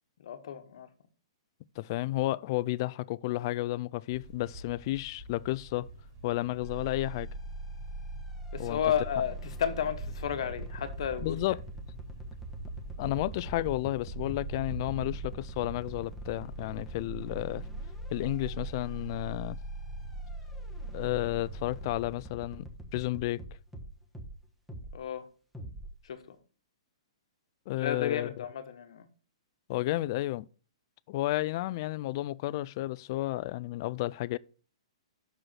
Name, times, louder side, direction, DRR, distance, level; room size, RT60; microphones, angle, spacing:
voice 1, 0.2-0.9 8.5-11.4 24.9-25.3 26.0-26.4 27.7-29.1, left 9 dB, 65° left, 1.1 m, -33 dB
voice 2, 1.8-5.9 6.2-7.3 8.6-8.8 11.2-11.6 13.0-17.6 18.1-19.6 20.9-23.4 27.7-28.4 29.7-30.5 31.1-34.4, left 17 dB, 45° left, 0.3 m, -32 dB
sound 1, 4.1-22.0, right 2 dB, 40° right, 3.1 m, -44 dB
sound 2, 6.6-24.4 24.7-25.0 25.5-26.0, right 1 dB, ahead, 1.1 m, -42 dB
6.2 x 5.1 x 5.7 m
hypercardioid pair, 145°, 3 cm